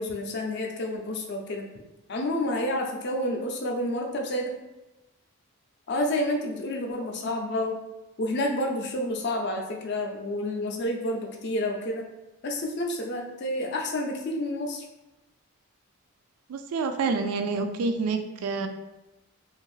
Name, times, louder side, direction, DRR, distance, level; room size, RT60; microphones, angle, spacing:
voice 1, 0.0-1.7 2.1-4.5 5.9-7.8 8.2-12.1 12.4-14.8, left 1 dB, 50° left, 2 dB, 0.4 m, -29 dB
voice 2, 16.5-18.7, right 4 dB, 80° right, 7 dB, 0.3 m, -28 dB
2.6 x 2.4 x 3.1 m, 1.0 s
head